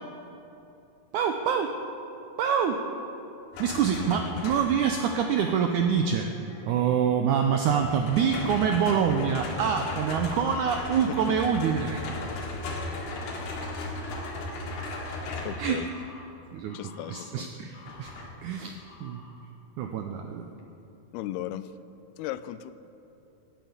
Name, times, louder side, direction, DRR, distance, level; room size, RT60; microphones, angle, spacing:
voice 1, 1.1-1.8 2.4-2.8 3.6-6.3 6.7-12.1 15.6-15.8 16.5-16.8 17.1-18.1 18.4-19.2 19.8-20.5, right 7 dB, 90° right, 1.7 m, -26 dB
sound 1, 3.5-4.9 7.6-15.7 17.9-18.3, left 2 dB, 70° left, 3.7 m, -36 dB
sound 2, 4.1-9.9 10.5-15.0 15.7-16.2 16.7-17.3 17.7-18.3 18.8-19.3 19.8-19.9, left 2 dB, 50° left, 2.6 m, -52 dB
voice 2, 15.5-15.9 16.7-17.5 21.1-21.7 22.2-22.7, left 13 dB, 90° left, 2.5 m, -36 dB
17.5 x 9.5 x 7.3 m
omnidirectional pair, 4.4 m